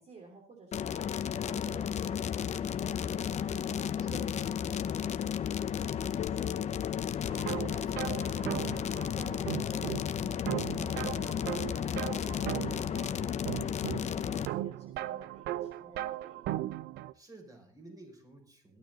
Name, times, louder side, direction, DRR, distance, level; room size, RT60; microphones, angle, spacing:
voice 1, 0.0-7.2 8.0-16.5, right 4 dB, 40° right, 2 dB, 3.4 m, -52 dB
sound 1, 0.7-14.5, left 8 dB, 40° left, 0.8 m, -33 dB
voice 2, 4.0-4.5 7.6-8.2 11.8-12.3 17.1-18.8, right 2 dB, 20° right, 3 dB, 6.0 m, -52 dB
sound 2, 6.2-10.3, left 15 dB, 85° left, 1.3 m, -47 dB
sound 3, 7.3-17.1, right 14 dB, 80° right, 0.7 m, -38 dB
17.0 x 12.5 x 4.1 m, 0.44 s
cardioid pair, 110°, 17 cm